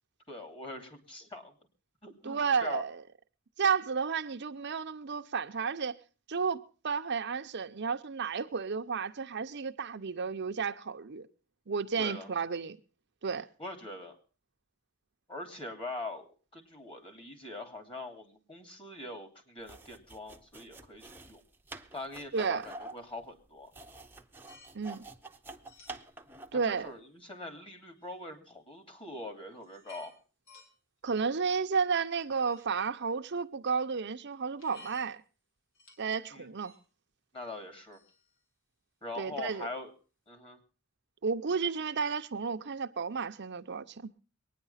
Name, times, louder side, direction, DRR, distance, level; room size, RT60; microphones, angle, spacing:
voice 1, 0.3-1.5 2.0-2.8 12.0-12.3 13.6-14.2 15.3-16.2 16.5-21.4 21.9-23.7 26.6-30.1 36.3-36.5 37.3-38.0 39.0-39.9 40.3-40.6, left 2 dB, 25° left, 2.8 m, -43 dB
voice 2, 2.2-3.0 3.6-5.9 6.3-11.3 11.7-12.8 13.2-13.5 22.3-22.7 24.7-25.0 26.5-26.9 31.0-35.2 36.0-36.7 39.2-39.7 41.2-44.1, right 5 dB, 55° right, 0.7 m, -32 dB
sound 1, 19.6-26.6, right 2 dB, 10° right, 0.8 m, -48 dB
sound 2, 24.5-24.7 25.7-26.1 26.7-26.8 28.0-28.1 29.0-29.1 29.5-30.1 30.5-30.7 31.3-31.8 32.5-32.8 34.6-35.1 35.7-36.2 36.6-36.8 37.4-37.6 37.9-38.4, left 3 dB, 65° left, 3.9 m, -56 dB
22.0 x 9.9 x 5.7 m
head